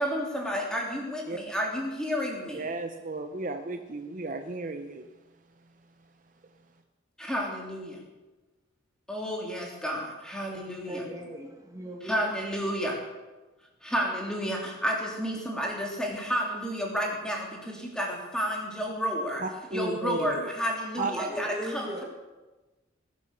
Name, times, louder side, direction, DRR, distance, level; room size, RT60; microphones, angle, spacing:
voice 1, 0.0-2.7 7.2-8.0 9.1-11.0 12.0-13.0 13.8-19.4 19.7-22.0, equal, 5° left, -1 dB, 3.0 m, -31 dB
voice 2, 2.5-5.1 19.4-20.5 21.0-21.1, right 2 dB, 40° right, 6 dB, 0.8 m, -34 dB
voice 3, 10.9-12.2 21.0-22.0, right 1 dB, 15° right, 1 dB, 1.8 m, -37 dB
20.5 x 8.4 x 6.8 m, 1.2 s
head